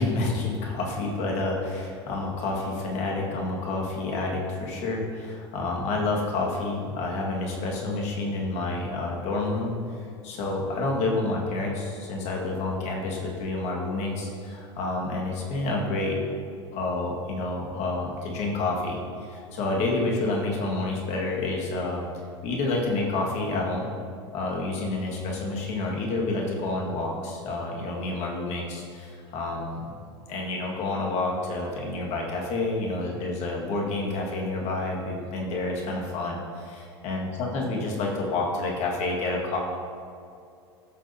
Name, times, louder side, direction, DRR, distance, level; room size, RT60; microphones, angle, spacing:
voice 1, 0.0-16.2 16.7-22.1 22.4-23.9 24.3-29.9 30.3-39.6, left 2 dB, 50° left, -1 dB, 1.9 m, -29 dB
14.5 x 6.4 x 2.8 m, 2.4 s
hypercardioid pair, 80°, 14 cm